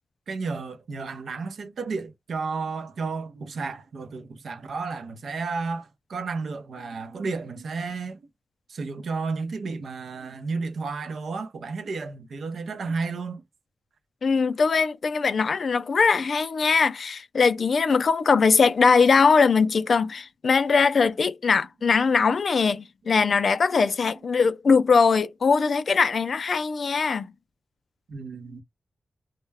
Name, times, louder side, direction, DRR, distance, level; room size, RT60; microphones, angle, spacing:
voice 1, 0.3-8.2 8.7-13.4 28.1-28.6, right 4 dB, 75° right, 0.5 m, -32 dB
voice 2, 14.2-27.3, left 5 dB, 55° left, 0.3 m, -21 dB
2.1 x 2.1 x 3.3 m
wide cardioid pair, 120°, 0 cm